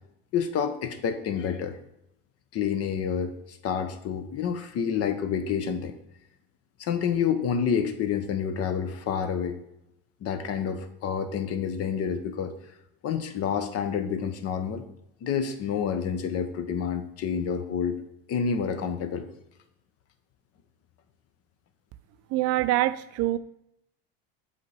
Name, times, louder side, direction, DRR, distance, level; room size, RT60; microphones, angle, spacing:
voice 1, 0.3-1.8 2.5-5.9 6.8-9.6 10.2-12.5 13.0-14.8 15.2-18.0 18.3-19.3, left 7 dB, 50° left, 10 dB, 0.8 m, -28 dB
voice 2, 22.3-23.4, right 15 dB, 50° right, 13 dB, 0.4 m, -25 dB
7.3 x 4.2 x 3.3 m, 0.81 s
supercardioid pair, 100°, 32 cm